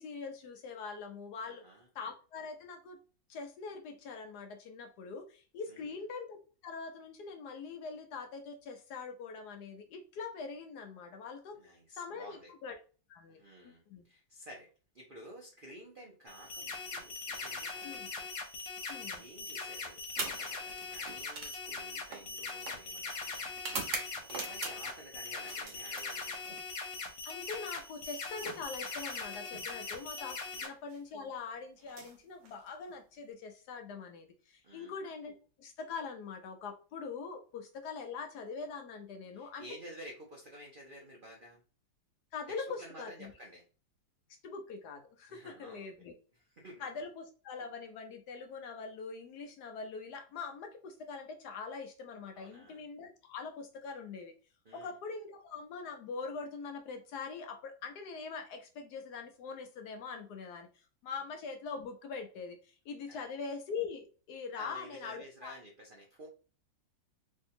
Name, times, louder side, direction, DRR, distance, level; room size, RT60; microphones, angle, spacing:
voice 1, 0.0-1.6 1.9-3.0 3.3-6.4 6.6-11.6 11.9-12.8 13.1-14.0 17.8-18.1 18.9-19.2 26.5-26.6 27.2-30.4 30.6-39.7 42.3-43.3 44.4-46.1 46.8-54.3 54.7-60.7 61.0-65.6, left 5 dB, 70° left, 5 dB, 1.1 m, -43 dB
voice 2, 1.4-1.9 5.7-6.0 11.6-12.5 13.3-14.7 14.9-18.3 18.6-23.5 24.0-26.5 29.7-30.0 30.5-30.7 34.6-35.0 39.3-41.6 42.5-43.6 45.3-46.1 46.4-46.8 52.3-52.8 54.6-55.0 63.1-63.3 64.6-66.3, equal, 65° right, -1 dB, 0.5 m, -52 dB
sound 1, 16.3-30.7, left 4 dB, 85° left, 1.5 m, -41 dB
sound 2, 20.1-25.0 25.4-26.6 27.8-29.7 30.7-31.0 31.8-33.0, right 4 dB, 80° right, 1.5 m, -44 dB
3.3 x 2.7 x 2.7 m, 0.36 s
omnidirectional pair, 2.0 m